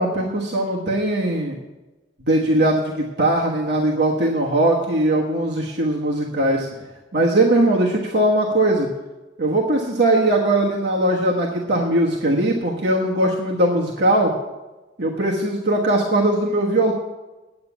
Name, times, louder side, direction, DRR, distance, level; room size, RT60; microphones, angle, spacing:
voice 1, 0.0-1.6 2.3-6.9 7.1-8.9 9.4-14.3 15.0-16.9, right 1 dB, 60° right, -2 dB, 1.3 m, -20 dB
9.5 x 9.0 x 7.2 m, 1.1 s
head